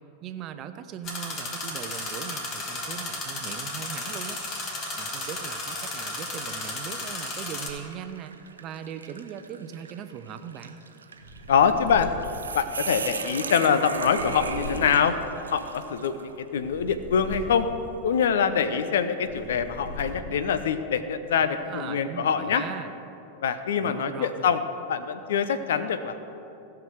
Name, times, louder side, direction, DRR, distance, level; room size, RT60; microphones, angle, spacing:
voice 1, 0.2-4.4 4.9-10.8 21.4-22.9 23.8-24.5, right 9 dB, 35° right, 10 dB, 0.6 m, -39 dB
sound 1, 1.0-7.7, left 2 dB, 35° left, 1.9 m, -34 dB
sound 2, 1.4-1.9 2.4-2.5 3.5-3.7 4.3-16.3, right 5 dB, 70° right, 0.7 m, -38 dB
sound 3, 11.1-13.1 13.8-15.8 16.5-18.4 19.1-20.5, left 1 dB, 75° left, 2.0 m, -40 dB
voice 2, 11.5-12.1 12.5-15.2 15.5-17.7 18.0-22.6 23.4-24.6 24.9-26.2, left 7 dB, 60° left, 11 dB, 0.6 m, -24 dB
16.0 x 5.9 x 6.6 m, 2.9 s
figure-of-eight pair, 90°, 0 cm